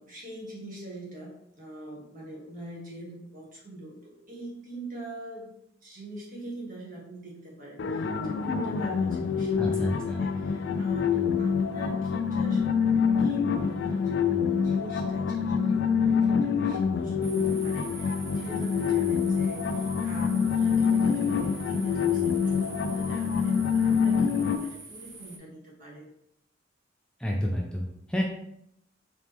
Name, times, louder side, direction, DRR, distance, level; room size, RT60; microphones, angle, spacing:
voice 1, 0.0-5.5 5.8-12.8 13.2-26.1, right 1 dB, 45° right, -4 dB, 1.5 m, -43 dB
sound 1, 7.8-24.6, left 6 dB, 65° left, 0.4 m, -26 dB
voice 2, 9.6-10.3 27.2-28.2, equal, 5° left, -2 dB, 0.4 m, -29 dB
sound 2, 17.2-25.4, right 3 dB, 75° right, 0.9 m, -45 dB
4.3 x 3.0 x 3.5 m, 0.75 s
head